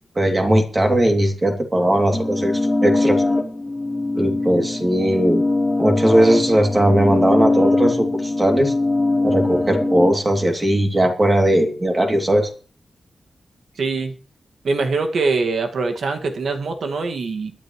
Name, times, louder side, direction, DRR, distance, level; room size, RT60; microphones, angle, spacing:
voice 1, 0.1-3.2 4.1-5.4 5.8-8.7 9.2-12.5, right 1 dB, 20° right, 3 dB, 2.8 m, -18 dB
sound 1, 2.1-10.1, left 2 dB, 10° left, 2.9 m, -21 dB
voice 2, 13.8-14.1 14.6-17.5, right 3 dB, 70° right, 5 dB, 2.0 m, -23 dB
22.5 x 10.5 x 3.2 m, 0.40 s
wide cardioid pair, 165°, 0 cm